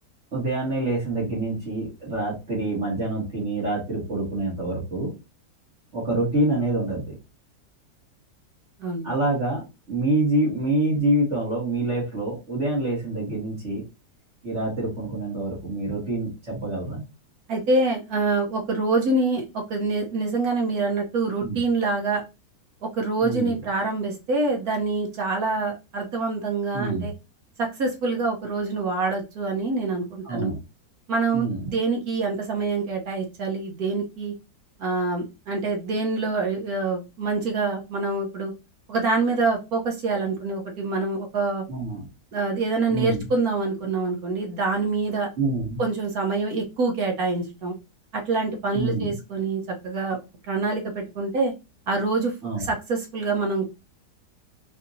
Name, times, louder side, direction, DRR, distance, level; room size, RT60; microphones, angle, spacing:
voice 1, 0.3-5.1 5.9-7.1 9.0-13.8 14.4-17.0 21.4-21.6 23.2-23.5 26.7-27.1 30.2-30.6 31.3-31.7 41.7-42.1 42.9-43.2 45.4-45.8 48.7-49.1 52.4-52.6, right 2 dB, 45° right, -7 dB, 2.1 m, -26 dB
voice 2, 8.8-9.1 17.5-19.4 19.7-22.2 22.9-27.1 27.6-30.5 31.1-34.3 34.8-38.5 38.9-41.6 42.3-45.3 45.8-47.7 48.1-50.2 50.5-51.5 51.9-53.7, right 3 dB, 65° right, 1 dB, 1.3 m, -26 dB
4.5 x 2.8 x 2.6 m, 0.27 s
omnidirectional pair, 1.8 m